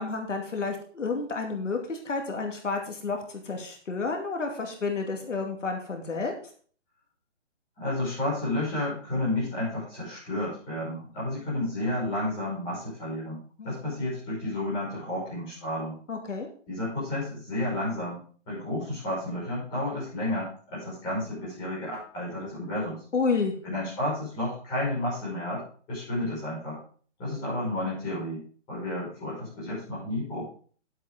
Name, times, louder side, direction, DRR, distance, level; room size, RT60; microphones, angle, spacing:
voice 1, 0.0-6.3 13.6-13.8 16.1-16.5 23.1-23.6, left 4 dB, 85° left, 3 dB, 2.6 m, -30 dB
voice 2, 7.8-15.9 16.7-18.2 18.5-23.0 23.6-25.6 25.9-26.8 27.2-28.4 28.7-30.4, left 1 dB, 10° left, -8 dB, 5.5 m, -31 dB
11.0 x 8.2 x 3.8 m, 0.43 s
hypercardioid pair, 175°, 36 cm